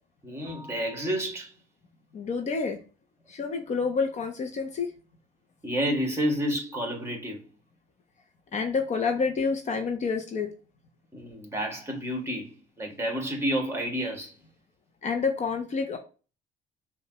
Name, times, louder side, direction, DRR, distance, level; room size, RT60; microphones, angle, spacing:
voice 1, 0.2-1.5 5.6-7.4 11.1-14.3, equal, 15° right, 1.6 m, -30 dB
voice 2, 2.1-2.8 3.3-4.9 8.5-10.5 15.0-16.0, left 5 dB, 45° left, 0.8 m, -28 dB
5.4 x 2.5 x 2.9 m
cardioid pair, 110°, 17 cm